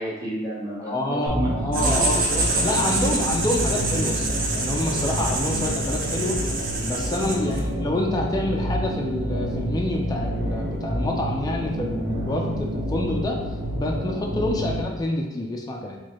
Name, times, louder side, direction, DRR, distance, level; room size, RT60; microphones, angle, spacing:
voice 1, 0.0-1.5 1.8-3.3 14.6-14.8, right 1 dB, 15° right, -7 dB, 1.0 m, -31 dB
voice 2, 0.9-2.2 2.6-6.4 6.8-13.4 13.7-16.0, left 1 dB, 20° left, 0 dB, 0.3 m, -27 dB
sound 1, 1.3-14.8, equal, 70° right, 0.9 m, -28 dB
Writing, 1.7-7.7, right 3 dB, 45° right, 0.6 m, -27 dB
4.3 x 2.3 x 3.0 m, 1.0 s
head